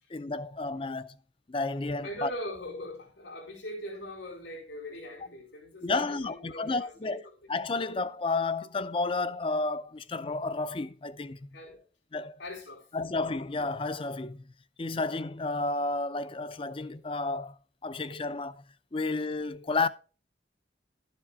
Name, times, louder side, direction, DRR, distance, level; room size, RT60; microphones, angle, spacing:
voice 1, 0.1-1.2 1.5-2.3 5.8-11.5 12.1-12.4 12.9-14.4 14.8-18.6 18.9-19.9, left 3 dB, 30° left, 0.5 m, -31 dB
voice 2, 2.0-7.1 11.5-11.8 12.4-12.9, equal, 90° left, 4.4 m, -41 dB
12.5 x 7.4 x 3.6 m
head